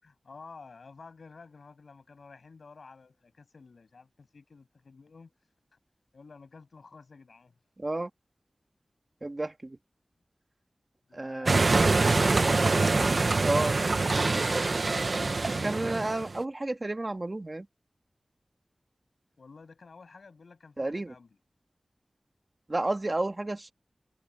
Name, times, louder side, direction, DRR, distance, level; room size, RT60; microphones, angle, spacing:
voice 1, 0.0-5.3 6.1-7.5 11.1-11.9 19.4-21.4, left 4 dB, 90° left, 6.7 m, -51 dB
voice 2, 7.8-8.1 9.2-9.8 11.1-11.6 13.4-13.7 15.6-17.7 20.8-21.1 22.7-23.7, right 2 dB, 35° right, 1.8 m, -31 dB
sound 1, 11.5-16.4, right 3 dB, 60° right, 0.7 m, -25 dB
wide cardioid pair, 80°, 0 cm